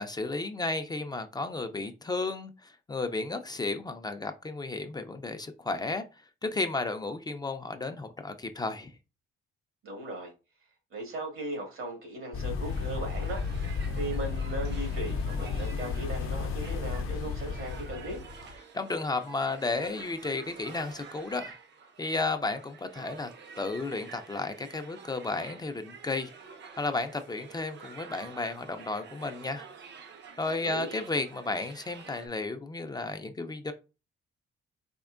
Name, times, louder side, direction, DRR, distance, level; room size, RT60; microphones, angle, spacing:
voice 1, 0.0-6.0 6.4-8.9 18.7-21.6 22.0-23.3 23.6-26.3 26.8-29.7 30.4-33.7, left 3 dB, 20° left, 0.3 m, -33 dB
voice 2, 9.8-10.3 10.9-18.2 30.4-30.9, right 2 dB, 85° right, 1.8 m, -38 dB
sound 1, 12.3-18.6, left 5 dB, 80° left, 0.5 m, -33 dB
sound 2, 12.5-32.3, right 6 dB, 55° right, 0.6 m, -49 dB
4.3 x 2.9 x 2.4 m
cardioid pair, 140°, 21 cm